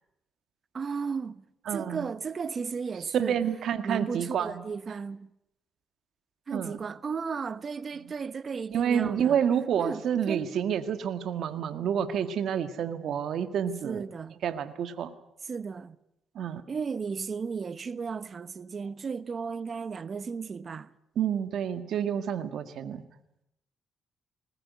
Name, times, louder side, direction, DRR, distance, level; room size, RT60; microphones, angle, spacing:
voice 1, 0.7-1.4 1.7-3.4 3.8-5.3 6.5-9.4 9.8-10.5 13.8-14.4 15.4-16.0 16.7-20.9, right 5 dB, 40° right, 1.1 m, -34 dB
voice 2, 1.7-2.0 3.1-4.6 6.5-6.8 8.7-14.0 14.4-15.1 16.4-16.6 21.2-23.0, right 8 dB, 70° right, 1.9 m, -29 dB
21.0 x 19.0 x 9.5 m
cardioid pair, 90°, 0 cm